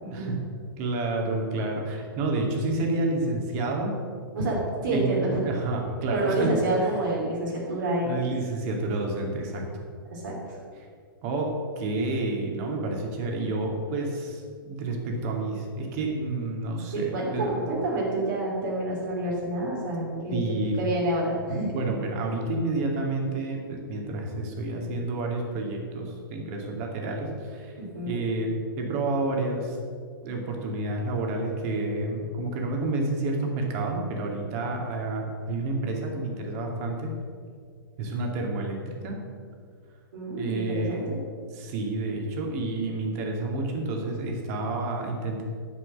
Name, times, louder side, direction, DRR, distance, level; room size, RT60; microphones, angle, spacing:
voice 1, 0.0-0.4 4.3-5.5 6.1-8.2 10.1-10.6 16.9-20.4 20.8-21.7 27.8-28.2 40.1-41.2, right 1 dB, 60° right, -4 dB, 2.9 m, -28 dB
voice 2, 0.8-3.9 4.9-6.5 6.8-6.9 8.0-9.8 11.2-17.6 20.3-20.8 21.7-27.8 28.1-29.8 30.2-37.1 38.0-39.2 40.4-41.2 41.5-45.4, right 2 dB, 40° right, 1 dB, 2.4 m, -29 dB
10.5 x 7.5 x 6.5 m, 2.1 s
figure-of-eight pair, 110°, 12 cm